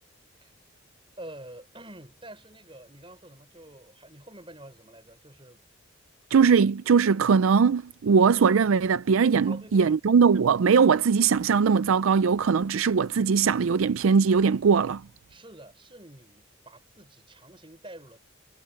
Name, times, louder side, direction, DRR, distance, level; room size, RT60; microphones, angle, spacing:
voice 1, 1.2-5.6 9.5-9.9 15.3-18.2, right 1 dB, 25° right, 6.2 m, -47 dB
voice 2, 6.3-15.0, right 6 dB, 75° right, 0.4 m, -20 dB
head